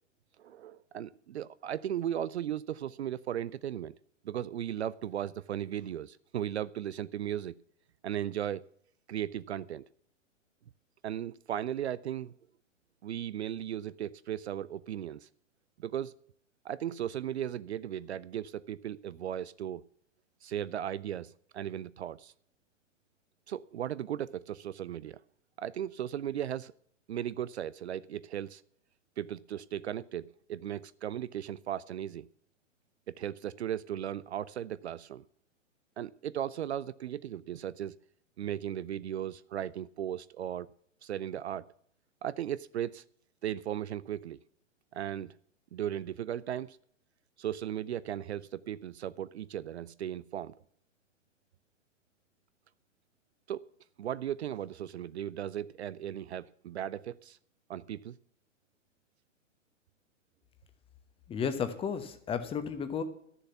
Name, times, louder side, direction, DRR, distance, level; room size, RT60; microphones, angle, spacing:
voice 1, 0.4-3.9 4.2-7.6 8.0-8.7 9.1-9.8 11.0-12.3 13.0-15.3 15.8-16.1 16.6-19.8 20.4-22.3 23.5-25.2 25.6-26.7 27.1-28.6 29.2-32.3 33.1-35.2 36.0-37.9 38.4-40.7 41.0-41.7 42.2-43.0 43.4-44.4 44.9-45.3 45.7-46.8 47.4-50.5 53.5-53.7 54.0-57.4 57.7-58.2, right 10 dB, 60° right, 18 dB, 0.5 m, -36 dB
voice 2, 61.3-63.0, left 7 dB, 15° left, 10 dB, 1.1 m, -33 dB
13.0 x 7.0 x 8.2 m, 0.67 s
figure-of-eight pair, 115°, 38 cm